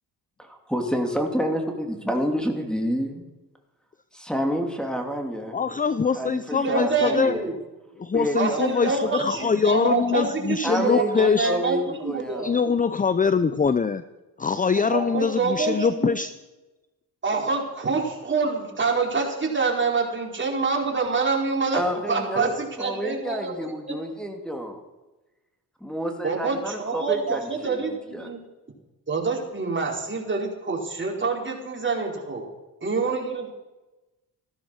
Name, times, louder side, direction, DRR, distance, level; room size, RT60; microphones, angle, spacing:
voice 1, 0.4-3.2 4.1-5.6 6.1-7.5 8.1-9.5 10.6-12.4 21.7-22.5 22.8-24.8 25.8-28.3, equal, ahead, 2 dB, 3.0 m, -29 dB
voice 2, 5.5-7.4 8.0-11.5 12.4-14.0 14.4-16.3, left 5 dB, 20° left, 13 dB, 0.6 m, -23 dB
voice 3, 6.5-7.5 8.3-12.5 14.9-16.1 17.2-21.8 22.1-24.0 26.2-28.4 29.1-32.5 32.8-33.5, right 4 dB, 30° right, 0 dB, 4.6 m, -26 dB
15.5 x 13.0 x 6.4 m, 1.1 s
supercardioid pair, 65°, 39 cm